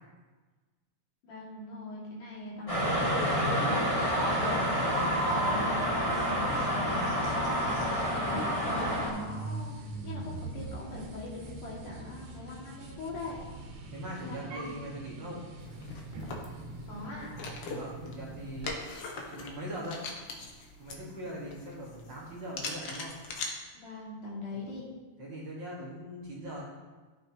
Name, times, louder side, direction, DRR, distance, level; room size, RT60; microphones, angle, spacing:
voice 1, 1.2-13.4 14.1-14.8 16.9-17.3 23.7-24.9, left 2 dB, 80° left, -5 dB, 3.8 m, -42 dB
sound 1, 2.7-9.1, equal, 15° left, 1.2 m, -28 dB
sound 2, 5.1-18.7, right 2 dB, 85° right, 2.9 m, -43 dB
voice 2, 13.9-15.4 17.6-18.7 19.3-20.0 20.8-23.2 25.2-26.6, right 1 dB, 40° right, -6 dB, 2.0 m, -41 dB
sound 3, 15.6-23.5, left 3 dB, 60° left, 1.7 m, -42 dB
13.0 x 7.8 x 2.9 m, 1.3 s
omnidirectional pair, 3.6 m